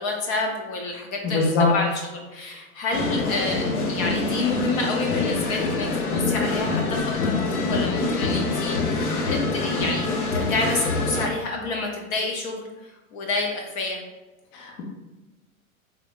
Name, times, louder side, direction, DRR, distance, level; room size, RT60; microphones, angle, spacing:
voice 1, 0.0-14.0, left 3 dB, 30° left, 1 dB, 0.4 m, -29 dB
voice 2, 1.2-1.7 14.6-14.8, left 3 dB, 50° left, 0 dB, 0.9 m, -22 dB
sound 1, 2.9-11.3, left 3 dB, 90° left, 0.7 m, -25 dB
3.7 x 3.3 x 2.3 m, 1.1 s
hypercardioid pair, 105°, 43 cm